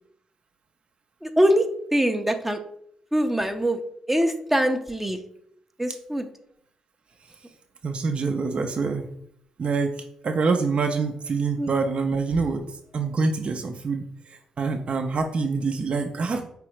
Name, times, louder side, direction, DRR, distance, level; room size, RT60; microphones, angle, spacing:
voice 1, 1.2-1.7 1.9-2.6 3.1-3.8 4.1-5.2 5.8-6.3 11.6-11.7, equal, 10° right, 5 dB, 0.6 m, -23 dB
voice 2, 7.8-9.1 9.6-12.6 12.9-16.4, right 4 dB, 50° right, 4 dB, 0.5 m, -26 dB
4.7 x 3.3 x 3.1 m, 0.70 s
hypercardioid pair, 45°, 2 cm